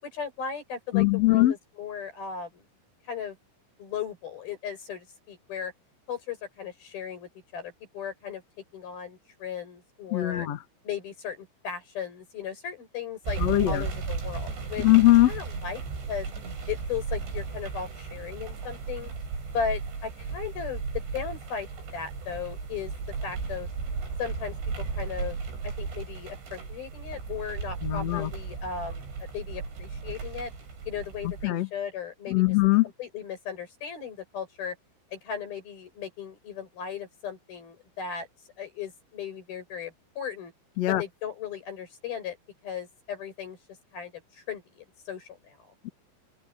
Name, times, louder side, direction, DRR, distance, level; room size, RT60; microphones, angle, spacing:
voice 1, 0.0-1.5 1.8-2.7 3.0-3.4 3.8-5.7 6.1-8.4 8.7-10.5 10.9-13.4 13.7-14.9 15.3-15.8 16.1-16.3 16.7-19.1 19.5-20.8 21.1-21.7 21.9-22.9 23.2-23.7 24.2-24.6 24.9-25.4 25.6-29.1 29.3-30.5 30.9-32.4 33.0-34.8 35.1-38.3 38.6-40.5 41.0-42.4 42.6-43.6 43.9-45.6, left 7 dB, 50° left, 8.7 m, -36 dB
voice 2, 0.9-1.5 10.1-10.6 13.4-13.9 14.8-15.3 27.8-28.3 31.4-31.7 32.3-32.8 40.8-41.0 45.8-45.9, left 17 dB, 85° left, 1.4 m, -21 dB
sound 1, 13.2-31.5, right 4 dB, 65° right, 9.8 m, -35 dB
open air
omnidirectional pair, 5.7 m